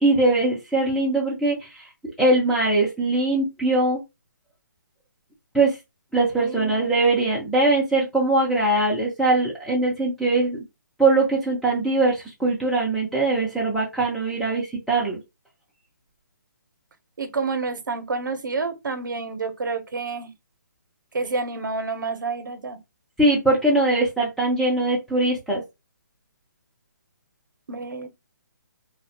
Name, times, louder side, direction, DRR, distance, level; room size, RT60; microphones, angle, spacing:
voice 1, 0.0-1.6 2.2-4.0 5.5-5.7 6.1-10.6 11.0-15.2 23.2-25.6, right 2 dB, ahead, 0.3 m, -21 dB
voice 2, 6.4-6.8 17.2-20.3 21.1-22.8 27.7-28.1, right 4 dB, 75° right, 0.6 m, -29 dB
2.4 x 2.1 x 2.6 m
hypercardioid pair, 160°, 10 cm